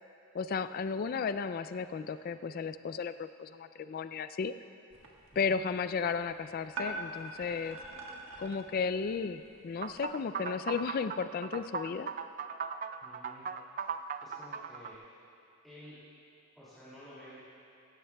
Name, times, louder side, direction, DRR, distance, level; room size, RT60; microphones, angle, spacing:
voice 1, 0.3-4.5 5.4-7.8 8.4-12.1, left 5 dB, 45° left, 12 dB, 0.3 m, -34 dB
sound 1, 4.9-10.1, right 2 dB, 75° right, 1.4 m, -45 dB
sound 2, 9.8-14.9, right 6 dB, 40° right, 0.3 m, -38 dB
voice 2, 13.0-13.5 14.2-15.0 15.6-16.0 16.5-17.4, equal, ahead, -13 dB, 2.4 m, -51 dB
16.0 x 15.0 x 2.3 m, 2.5 s
head